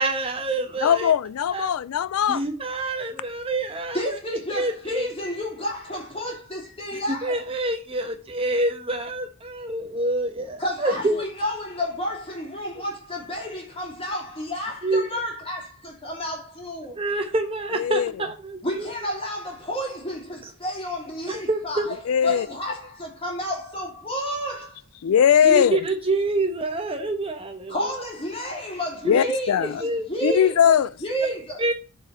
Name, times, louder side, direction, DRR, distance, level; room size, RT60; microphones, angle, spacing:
voice 1, 0.0-1.1 1.5-1.7 2.3-4.1 4.5-5.1 7.2-11.1 14.8-15.0 17.0-18.9 21.3-21.9 25.4-27.9 29.0-29.1 29.8-30.4 31.6-31.7, right 2 dB, 25° right, 1.0 m, -26 dB
voice 2, 0.8-2.4 17.7-18.1 22.1-22.5 25.0-25.8 29.1-29.8 30.2-30.9, left 8 dB, 80° left, 0.3 m, -20 dB
voice 3, 3.9-7.5 10.6-17.0 18.6-22.0 22.2-24.8 27.7-31.6, equal, 25° left, 3.0 m, -31 dB
7.5 x 5.0 x 5.5 m
head